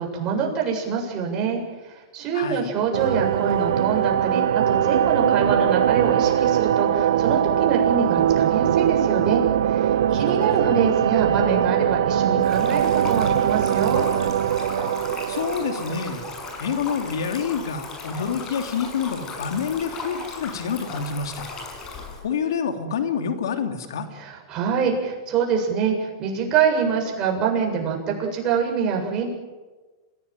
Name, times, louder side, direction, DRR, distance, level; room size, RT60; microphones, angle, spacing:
voice 1, 0.0-9.4 9.7-14.1 24.2-29.3, right 6 dB, 30° right, 0 dB, 7.5 m, -25 dB
voice 2, 2.3-2.7 10.1-10.6 15.3-16.2 16.6-21.5 22.2-24.1, left 6 dB, 85° left, 6 dB, 3.0 m, -27 dB
sound 1, 2.9-16.5, right 10 dB, 80° right, 1.3 m, -21 dB
Stream, 12.4-22.2, left 3 dB, 25° left, 6.7 m, -36 dB
27.0 x 17.5 x 9.1 m, 1.3 s
hypercardioid pair, 135°, 2 cm